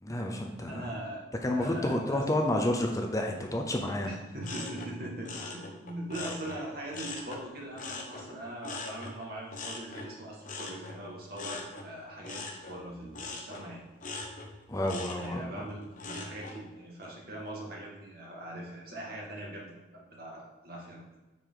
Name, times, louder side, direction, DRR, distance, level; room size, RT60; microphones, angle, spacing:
voice 1, 0.0-0.9 1.4-4.2 14.7-15.6, left 1 dB, 15° left, 2 dB, 0.7 m, -30 dB
voice 2, 0.7-2.2 4.0-13.8 15.1-21.2, right 1 dB, 55° right, -2 dB, 1.9 m, -41 dB
sound 1, 4.4-7.4 7.8-16.6 17.0-17.5, left 3 dB, 45° left, 1.0 m, -42 dB
9.2 x 5.1 x 3.9 m, 1.1 s
head